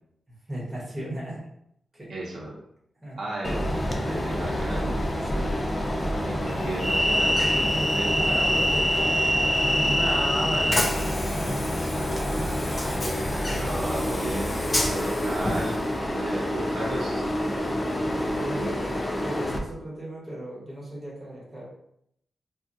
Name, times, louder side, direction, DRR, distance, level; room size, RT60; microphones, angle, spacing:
voice 1, 0.5-1.4 1.9-2.1 3.0-3.2 5.2-6.4 7.1-9.2 9.6-10.0 12.2-12.5 18.0-21.6, right 1 dB, 10° right, -7 dB, 1.2 m, -37 dB
voice 2, 2.1-2.6 3.2-3.7 4.0-5.0 6.2-8.8 9.4-9.5 9.8-12.2 13.3-14.5 14.8-15.8 16.1-17.3, right 2 dB, 70° right, -4 dB, 0.7 m, -34 dB
Train, 3.4-19.6, left 1 dB, 20° left, 0.3 m, -26 dB
3.5 x 2.2 x 2.6 m, 0.74 s
wide cardioid pair, 160°, 0 cm